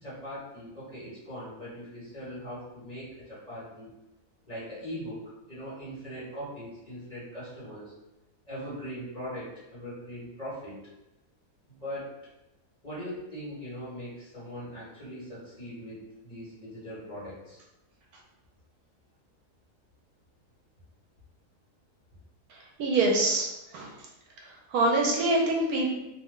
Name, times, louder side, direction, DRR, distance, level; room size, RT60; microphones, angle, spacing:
voice 1, 0.0-3.9 4.4-5.2 5.5-7.9 8.5-10.8 11.7-12.1 12.8-17.6, equal, 25° left, -10 dB, 1.2 m, -40 dB
voice 2, 22.5-24.0 24.4-25.9, right 2 dB, 75° right, -1 dB, 1.0 m, -26 dB
2.7 x 2.1 x 3.6 m, 0.95 s
omnidirectional pair, 1.7 m